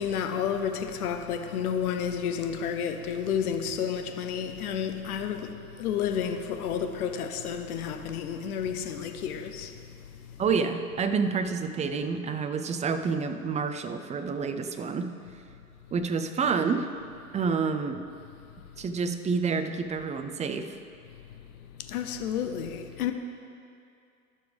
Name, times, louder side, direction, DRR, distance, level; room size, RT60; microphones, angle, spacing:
voice 1, 0.0-10.4 21.8-23.1, left 8 dB, 75° left, 6 dB, 1.0 m, -31 dB
voice 2, 10.4-15.1 15.9-16.9 17.3-18.0 18.8-20.8, right 5 dB, 15° right, 7 dB, 0.5 m, -28 dB
21.0 x 7.0 x 3.5 m, 2.5 s
hypercardioid pair, 105°, 44 cm